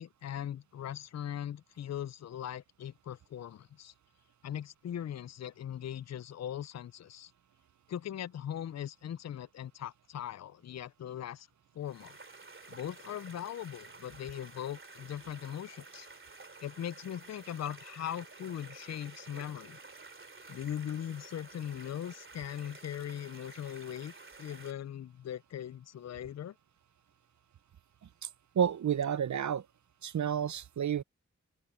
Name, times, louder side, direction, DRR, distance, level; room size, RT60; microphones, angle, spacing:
voice 1, 0.0-3.9 4.4-7.3 7.9-11.5 11.7-12.2 12.7-16.1 16.6-19.8 20.5-24.1 24.4-26.5, left 10 dB, 65° left, 0.4 m, -40 dB
sound 1, 11.8-24.7, right 3 dB, 45° right, 2.9 m, -51 dB
voice 2, 28.5-29.7 30.0-31.0, right 8 dB, 75° right, 0.6 m, -30 dB
open air
wide cardioid pair, 60°, 29 cm